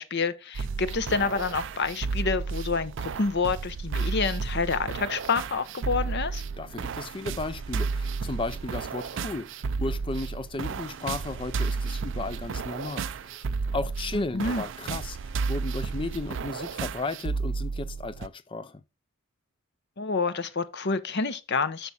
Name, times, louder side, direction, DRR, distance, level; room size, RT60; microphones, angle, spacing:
voice 1, 0.0-6.4 14.1-14.6 20.0-21.9, left 4 dB, 50° left, 0.8 m, -28 dB
sound 1, 0.5-18.3, right 4 dB, 55° right, 0.4 m, -32 dB
voice 2, 6.6-13.5 13.7-18.8, left 3 dB, 25° left, 0.4 m, -35 dB
8.0 x 6.1 x 4.1 m
head